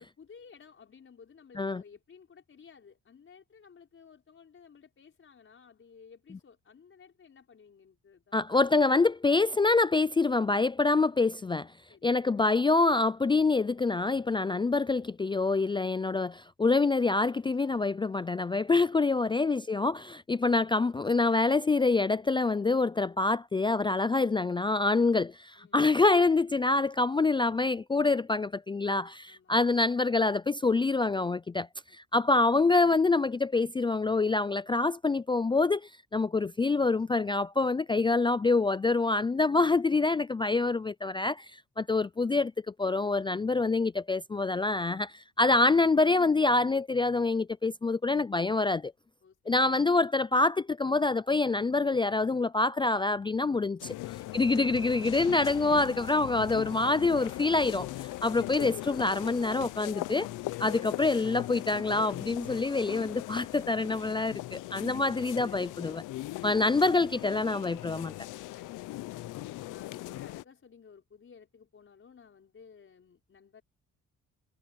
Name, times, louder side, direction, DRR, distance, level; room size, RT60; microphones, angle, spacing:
voice 1, 0.0-8.5 11.9-12.3 25.6-25.8 29.3-29.5 31.9-32.0 49.2-49.7 69.7-73.6, left 6 dB, 45° left, 5.6 m, -56 dB
voice 2, 8.3-11.7 12.0-31.7 31.9-42.5 42.8-48.9 49.5-53.9 54.3-57.9 58.2-60.3 60.6-66.0 66.4-68.1, left 3 dB, 15° left, 0.4 m, -26 dB
sound 1, 53.8-70.4, left 17 dB, 85° left, 0.7 m, -40 dB
cardioid pair, 90°, 30 cm